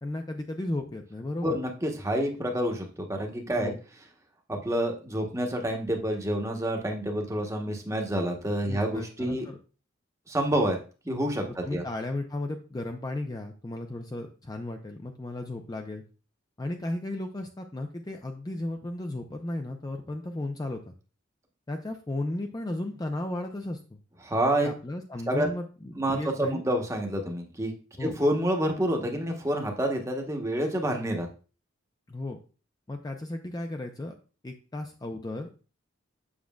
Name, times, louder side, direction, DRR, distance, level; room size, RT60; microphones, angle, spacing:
voice 1, 0.0-1.6 3.6-3.8 8.7-9.6 11.6-16.0 16.6-20.9 21.7-24.0 24.6-26.6 28.0-28.2 32.1-32.4 32.9-34.1 34.4-35.7, left 1 dB, 20° left, 5 dB, 0.4 m, -35 dB
voice 2, 1.4-3.7 4.5-9.5 10.3-10.8 11.0-11.8 24.2-24.7 25.3-25.5 26.0-27.7 28.0-31.3, right 1 dB, 15° right, 3 dB, 1.0 m, -28 dB
7.2 x 6.2 x 2.3 m, 0.36 s
head